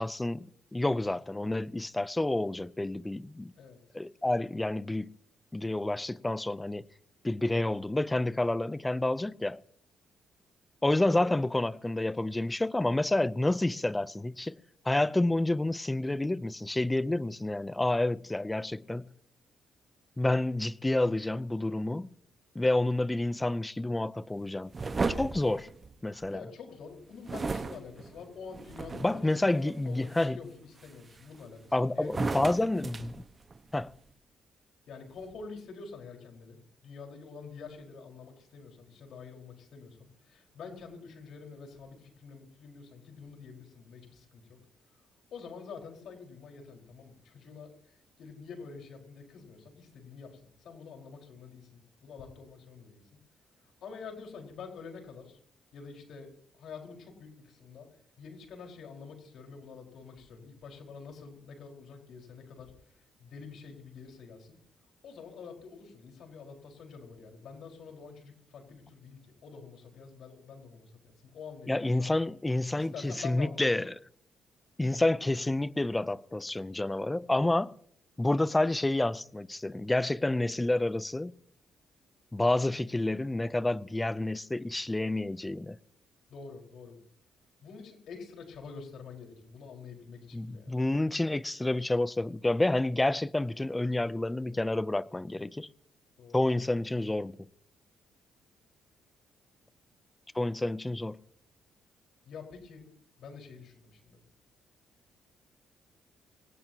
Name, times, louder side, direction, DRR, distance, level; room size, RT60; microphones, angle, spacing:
voice 1, 0.0-3.5 3.9-5.1 5.5-6.9 7.2-9.6 10.8-14.6 14.8-19.1 20.2-22.1 22.5-24.7 25.1-25.7 26.0-26.4 29.0-30.4 31.7-33.2 33.7-33.9 71.7-73.9 74.8-77.7 78.2-81.3 82.3-85.8 90.3-95.7 96.3-97.4 100.3-101.2, left 2 dB, 15° left, 0.6 m, -29 dB
sound 1, 24.7-26.4 27.3-29.3 29.9-30.2 30.8-31.6 32.0-33.9, right 4 dB, 30° right, 1.3 m, -35 dB
voice 2, 26.3-32.7 34.9-44.6 45.3-53.2 53.6-55.4 55.7-56.3 56.6-57.9 58.2-64.6 65.0-72.1 72.7-73.7 86.3-87.0 87.6-90.8 96.2-96.4 102.3-102.9 103.2-104.2, left 5 dB, 70° left, 4.8 m, -47 dB
24.5 x 18.5 x 2.9 m
cardioid pair, 90°, 0 cm